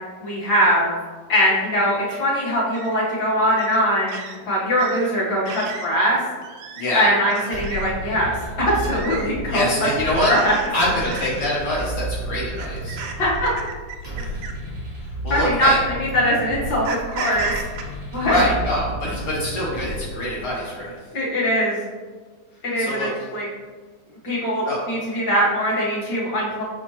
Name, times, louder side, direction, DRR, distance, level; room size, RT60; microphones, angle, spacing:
voice 1, 0.2-1.0 1.3-4.1 4.4-6.2 6.9-9.6 10.3-10.5 13.2-13.5 15.3-17.5 18.1-18.4 21.1-21.8 22.6-23.5 24.2-26.6, equal, 45° left, -8 dB, 1.4 m, -21 dB
sound 1, 2.1-2.2 2.7-2.9 3.6-3.8 4.1-4.4 4.8-5.0 5.5-5.9 6.4-6.8 7.3-7.9 8.7-9.3 10.1-10.7 11.0-11.5 12.5-14.6 15.5-15.7 16.8-17.8, right 5 dB, 85° right, 1.8 m, -34 dB
voice 2, 6.8-7.1 9.5-10.3 10.7-13.0 14.1-14.4 15.0-15.8 18.2-20.9 22.8-23.1 24.6-24.8, left 1 dB, 85° left, -7 dB, 0.9 m, -25 dB
sound 2, 7.5-20.5, right 1 dB, 70° right, 0.4 m, -32 dB
6.3 x 5.3 x 3.2 m, 1.4 s
omnidirectional pair, 4.4 m